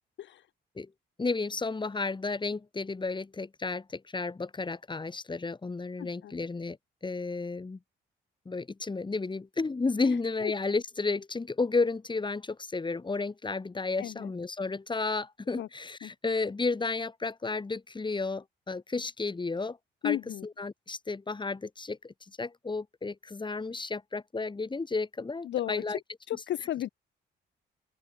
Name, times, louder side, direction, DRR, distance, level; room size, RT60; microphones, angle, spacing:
voice 1, 1.2-6.8 7.0-7.8 8.4-19.8 20.0-26.0 26.3-26.4, left 3 dB, 25° left, 3.1 m, -32 dB
voice 2, 6.0-6.3 10.1-10.2 10.4-10.5 14.0-14.3 15.6-15.7 16.0-16.1 20.0-20.4 25.4-25.8 26.3-26.9, left 12 dB, 65° left, 1.0 m, -33 dB
open air
cardioid pair, 90°, 20 cm